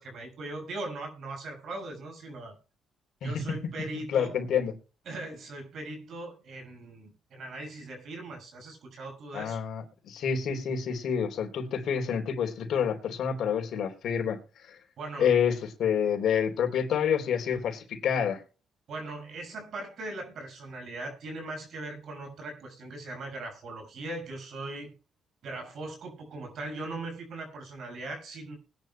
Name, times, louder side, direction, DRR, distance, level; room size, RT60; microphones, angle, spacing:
voice 1, 0.0-2.5 3.2-4.3 5.0-9.6 15.0-15.3 18.9-24.9 25.4-28.6, right 2 dB, 65° right, 4 dB, 6.5 m, -39 dB
voice 2, 4.1-4.7 9.3-14.4 14.7-14.8 15.2-18.4, left 7 dB, 70° left, 5 dB, 3.5 m, -28 dB
21.0 x 10.5 x 2.3 m, 0.34 s
cardioid pair, 90°, 0 cm